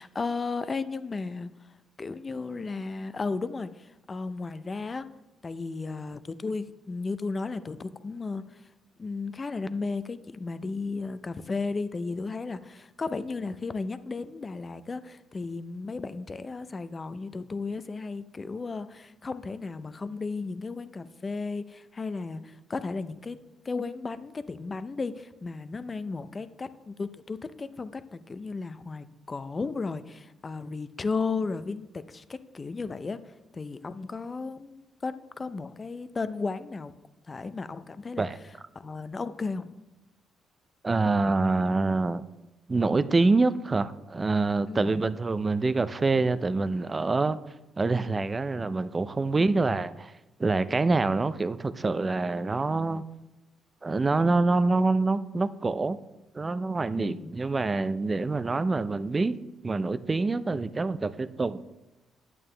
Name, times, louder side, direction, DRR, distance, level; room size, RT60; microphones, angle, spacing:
voice 1, 0.0-1.7 2.0-5.1 5.4-8.7 9.0-23.4 23.6-36.9 37.3-38.3 38.7-39.7 44.7-45.0 57.0-57.3, left 4 dB, 30° left, 13 dB, 0.5 m, -34 dB
voice 2, 40.8-42.2 42.7-47.4 47.8-50.1 50.4-53.0 53.8-56.0 56.3-59.4 59.6-61.8, right 3 dB, 25° right, 14 dB, 0.4 m, -26 dB
9.0 x 8.5 x 3.3 m, 1.0 s
cardioid pair, 90°, 0 cm